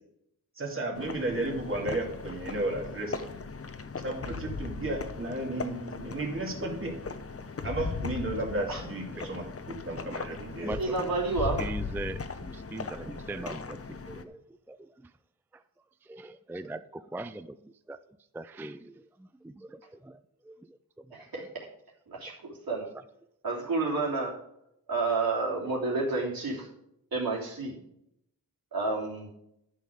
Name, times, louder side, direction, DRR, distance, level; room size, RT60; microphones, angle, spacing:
voice 1, 0.6-3.4 4.0-7.0 7.6-10.8, right 2 dB, 35° right, 2.4 m, -33 dB
sound 1, 0.9-14.2, left 4 dB, 40° left, 0.8 m, -38 dB
voice 2, 9.9-10.3 10.6-11.0 11.6-14.4 14.7-15.1 15.5-15.6 16.0-18.0 18.3-21.2, right 2 dB, 5° right, 0.3 m, -41 dB
voice 3, 10.8-11.6 21.1-21.7 22.1-22.9 23.4-24.4 24.9-26.7 27.1-27.8 28.7-29.3, right 3 dB, 80° right, 3.3 m, -30 dB
11.5 x 6.4 x 5.1 m
wide cardioid pair, 145°, 35 cm